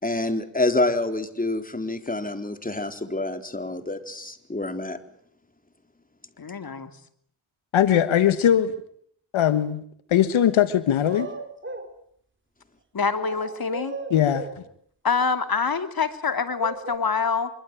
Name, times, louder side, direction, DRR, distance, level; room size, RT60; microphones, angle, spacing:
voice 1, 0.0-5.0, left 2 dB, 20° left, 8 dB, 4.0 m, -27 dB
voice 2, 6.4-6.9 12.9-14.0 15.0-17.5, left 5 dB, 50° left, 9 dB, 3.0 m, -25 dB
voice 3, 7.7-8.8 9.3-9.8 10.1-11.3 14.1-14.5, left 10 dB, 85° left, 12 dB, 1.5 m, -20 dB
sound 1, 11.0-11.9 13.2-14.6 16.6-17.0, right 2 dB, 25° right, 4.7 m, -35 dB
25.0 x 24.0 x 9.3 m, 0.66 s
cardioid pair, 65°, 47 cm